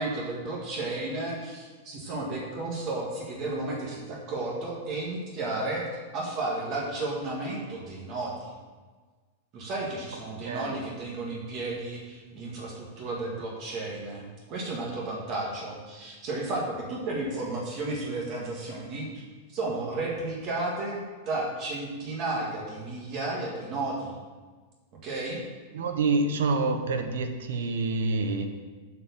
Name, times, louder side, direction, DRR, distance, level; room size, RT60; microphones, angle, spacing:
voice 1, 0.0-5.9 6.1-8.5 9.5-19.1 19.5-21.0 21.2-24.1 25.0-25.4, right 2 dB, 35° right, -3 dB, 1.8 m, -33 dB
voice 2, 10.4-10.8 25.7-28.5, right 3 dB, 85° right, 6 dB, 1.1 m, -27 dB
8.4 x 4.8 x 7.0 m, 1.4 s
supercardioid pair, 160°, 0 cm